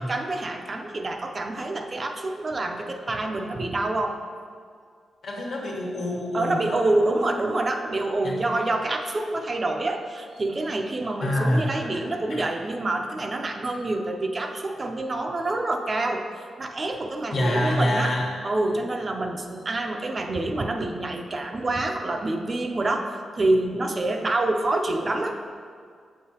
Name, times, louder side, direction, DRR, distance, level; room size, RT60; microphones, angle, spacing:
voice 1, 0.0-4.2 6.3-16.2 16.6-18.2 18.4-25.4, right 2 dB, 40° right, 4 dB, 0.5 m, -27 dB
voice 2, 5.2-7.4 8.2-8.4 11.2-12.0 12.3-12.4 17.3-18.3, left 1 dB, 70° left, -4 dB, 1.4 m, -27 dB
7.2 x 5.6 x 2.9 m, 2.1 s
cardioid pair, 80°, 0 cm